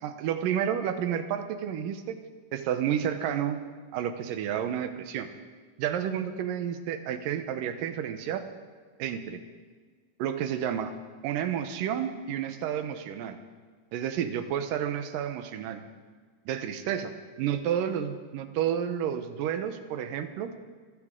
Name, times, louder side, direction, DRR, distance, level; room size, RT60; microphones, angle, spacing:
voice 1, 0.0-2.2 2.5-3.6 3.9-5.3 5.8-8.5 9.0-9.4 10.2-10.9 11.2-13.4 13.9-15.8 16.5-20.5, right 9 dB, 80° right, 9 dB, 2.6 m, -30 dB
25.0 x 15.0 x 3.8 m, 1.5 s
omnidirectional pair, 4.0 m